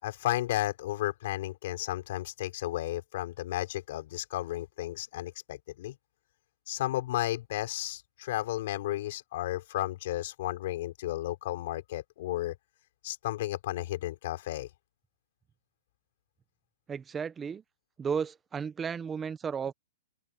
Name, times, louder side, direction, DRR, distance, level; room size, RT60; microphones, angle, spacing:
voice 1, 0.0-6.0 6.7-12.5 13.0-14.7, left 15 dB, 50° left, 4.8 m, -33 dB
voice 2, 16.9-17.6 18.0-19.7, right 6 dB, 10° right, 1.0 m, -34 dB
open air
hypercardioid pair, 160°, 0 cm